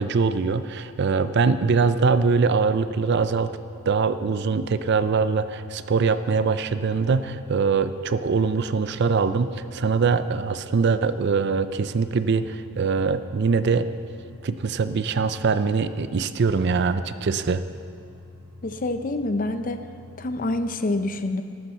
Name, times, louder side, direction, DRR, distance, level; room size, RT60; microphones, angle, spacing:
voice 1, 0.0-3.5 3.9-13.9 14.4-17.6, right 5 dB, 50° right, 12 dB, 0.4 m, -23 dB
sound 1, 1.6-20.8, left 3 dB, 75° right, 1.1 m, -47 dB
voice 2, 18.6-19.8 20.2-21.4, left 2 dB, 35° left, 9 dB, 0.5 m, -26 dB
13.5 x 12.0 x 4.4 m, 2.4 s
head